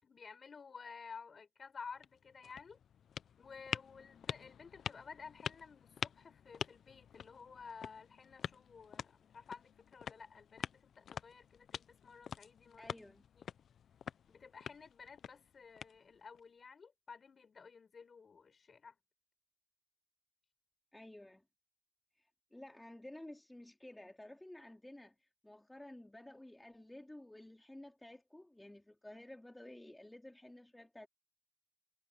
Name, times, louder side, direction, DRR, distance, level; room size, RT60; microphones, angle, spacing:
voice 1, 0.0-2.8 3.4-13.0 13.3-13.5 14.3-19.0, left 5 dB, 40° left, 6.0 m, -53 dB
sound 1, 1.8-16.4, left 8 dB, 60° left, 0.7 m, -47 dB
voice 2, 12.8-13.2 20.9-21.4 22.2-31.1, left 1 dB, 10° left, 2.7 m, -53 dB
cardioid pair, 90°, 0 cm